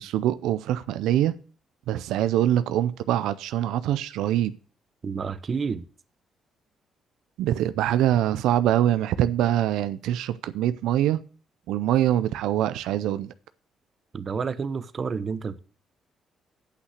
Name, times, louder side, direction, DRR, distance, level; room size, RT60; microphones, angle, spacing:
voice 1, 0.0-1.4 1.9-4.5 7.4-11.2 11.7-13.3, right 12 dB, 90° right, 0.4 m, -24 dB
voice 2, 5.0-5.9 14.1-15.6, right 5 dB, 45° right, 0.8 m, -30 dB
8.2 x 5.9 x 7.8 m
cardioid pair, 90°, 0 cm